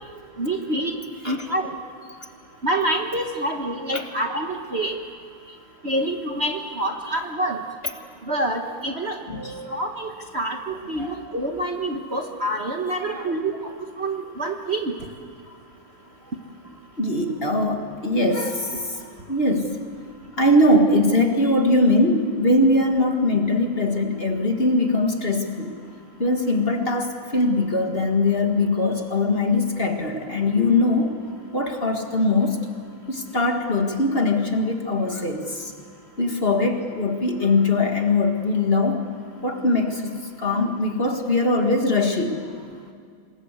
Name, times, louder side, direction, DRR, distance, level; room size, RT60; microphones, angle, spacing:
voice 1, 0.4-0.9 1.2-1.7 2.6-5.0 5.8-7.6 8.3-9.2 9.7-13.7 14.0-14.9, right 1 dB, 35° right, 3 dB, 1.5 m, -26 dB
voice 2, 9.3-9.7 10.9-11.2 12.9-13.4 17.0-19.8 20.4-25.8 26.2-31.1 31.5-32.6 33.1-35.7 36.2-39.0 39.4-42.4, left 2 dB, 30° left, 4 dB, 2.0 m, -21 dB
26.0 x 21.0 x 8.2 m, 2.3 s
omnidirectional pair, 2.1 m